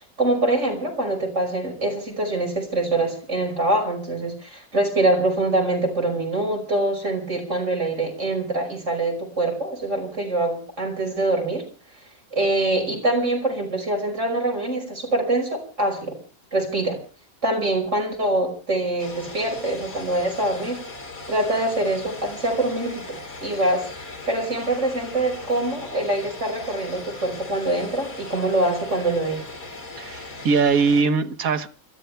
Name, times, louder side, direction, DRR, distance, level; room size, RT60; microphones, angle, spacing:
voice 1, 0.2-11.6 12.3-16.2 16.5-17.0 17.4-20.8 21.3-29.5, right 2 dB, 55° right, 1 dB, 6.0 m, -24 dB
sound 1, 19.0-31.0, left 3 dB, 80° left, 3.2 m, -39 dB
voice 2, 30.0-31.7, right 5 dB, 75° right, 6 dB, 1.6 m, -21 dB
29.5 x 14.0 x 3.4 m, 0.37 s
omnidirectional pair, 1.5 m